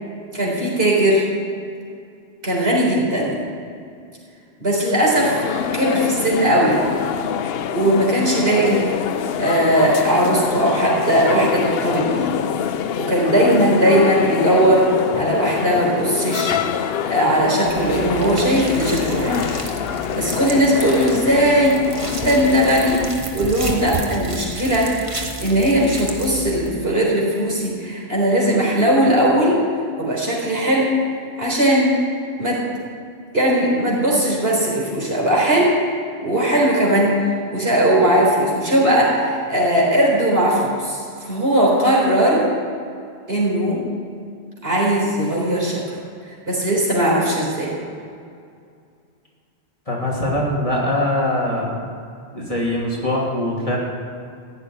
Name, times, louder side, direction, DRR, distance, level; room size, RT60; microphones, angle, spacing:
voice 1, 0.3-1.2 2.4-3.4 4.6-5.3 5.7-6.8 7.7-8.9 9.4-12.3 13.0-16.5 17.1-19.6 20.1-21.8 22.1-23.1 23.3-25.0 25.4-29.6 30.0-31.0 31.4-31.9 32.4-32.6 33.3-35.7 36.2-37.2 37.5-42.5 43.3-43.8 44.6-45.8 46.5-47.7, right 1 dB, 60° right, -4 dB, 4.5 m, -18 dB
sound 1, 5.2-23.1, left 8 dB, 65° left, 0.8 m, -25 dB
sound 2, 17.6-26.7, right 2 dB, 30° right, 1.4 m, -32 dB
voice 2, 49.9-51.7 52.3-53.8, left 1 dB, 30° left, -4 dB, 2.8 m, -22 dB
15.5 x 7.0 x 9.8 m, 2.3 s
omnidirectional pair, 1.1 m